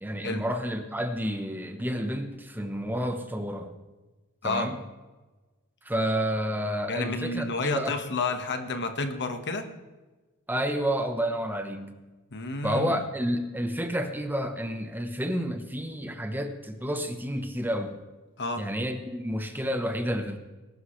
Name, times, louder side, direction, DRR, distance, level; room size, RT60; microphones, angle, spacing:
voice 1, 0.0-3.7 4.4-4.8 5.8-8.0 10.5-12.0 12.6-18.0 18.6-20.4, equal, 10° right, 7 dB, 1.0 m, -30 dB
voice 2, 6.9-9.7 12.3-13.0 18.4-18.7, left 3 dB, 55° left, 7 dB, 1.5 m, -30 dB
21.0 x 12.0 x 3.3 m, 1.2 s
head